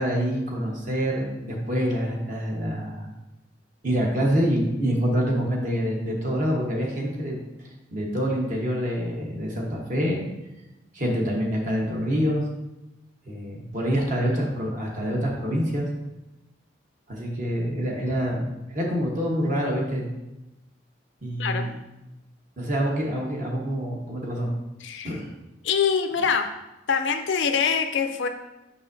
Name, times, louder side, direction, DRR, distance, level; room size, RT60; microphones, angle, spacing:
voice 1, 0.0-3.1 3.8-10.2 10.9-12.4 13.2-15.9 17.1-20.1 21.2-21.8 22.6-24.5 25.0-25.3, equal, 40° right, -1 dB, 1.1 m, -26 dB
voice 2, 24.8-25.2 25.6-26.5 26.9-28.3, left 6 dB, 70° left, 6 dB, 0.5 m, -24 dB
6.9 x 5.4 x 2.6 m, 0.98 s
head